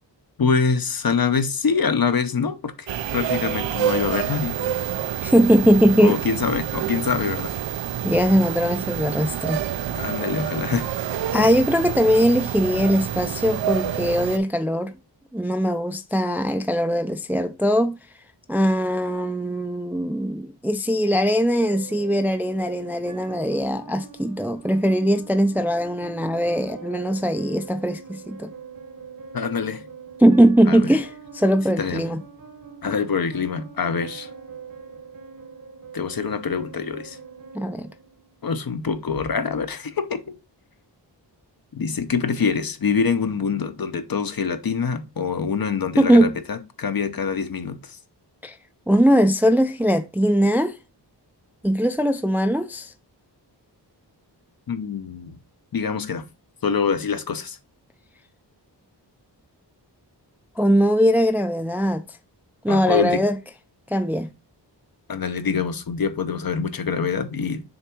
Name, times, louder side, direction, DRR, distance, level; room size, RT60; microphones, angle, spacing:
voice 1, 0.4-2.9 3.1-4.5 6.0-7.5 10.0-10.9 29.3-29.8 30.7-30.9 31.8-32.1 32.8-34.3 35.9-37.2 38.4-40.4 41.7-48.0 54.7-55.4 55.7-56.2 56.6-57.6 62.7-63.2 65.1-67.6, left 5 dB, 55° left, 0.8 m, -25 dB
sound 1, 2.9-14.4, right 10 dB, 85° right, 0.6 m, -28 dB
voice 2, 5.2-6.2 8.0-9.6 11.3-14.9 15.3-18.0 18.5-28.5 30.2-32.2 37.5-37.9 46.0-46.4 48.4-48.6 48.9-50.7 51.6-52.9 60.6-62.0 62.6-63.4 63.9-64.3, equal, 5° right, 0.4 m, -20 dB
sound 2, 21.5-38.5, right 5 dB, 50° right, 1.0 m, -43 dB
6.6 x 3.5 x 4.5 m
wide cardioid pair, 110°, 43 cm